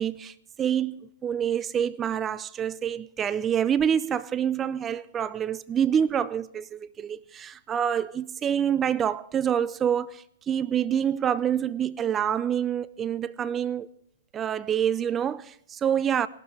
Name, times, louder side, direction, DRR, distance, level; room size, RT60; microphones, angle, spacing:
voice 1, 0.0-13.9 14.3-16.3, right 8 dB, 20° right, 0.4 m, -27 dB
18.0 x 12.5 x 3.4 m
hypercardioid pair, 130°, 0 cm